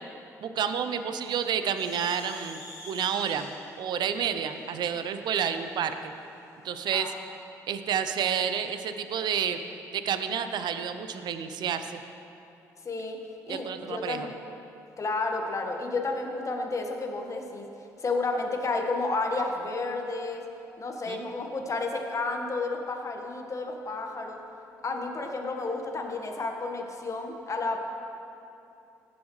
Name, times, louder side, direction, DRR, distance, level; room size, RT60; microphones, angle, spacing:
voice 1, 0.4-2.6 2.9-3.5 3.8-6.1 6.6-7.1 7.7-9.6 9.9-12.0 13.5-14.3 21.1-21.3, right 8 dB, 60° right, 9 dB, 0.7 m, -30 dB
sound 1, 1.8-6.3, left 2 dB, 90° left, 2.7 m, -47 dB
voice 2, 6.9-7.2 12.8-13.2 13.5-14.4 15.0-17.7 18.0-20.5 20.8-24.4 24.8-27.8, left 3 dB, 40° left, 2 dB, 1.5 m, -31 dB
17.0 x 7.1 x 3.2 m, 2.7 s
hypercardioid pair, 50°, 8 cm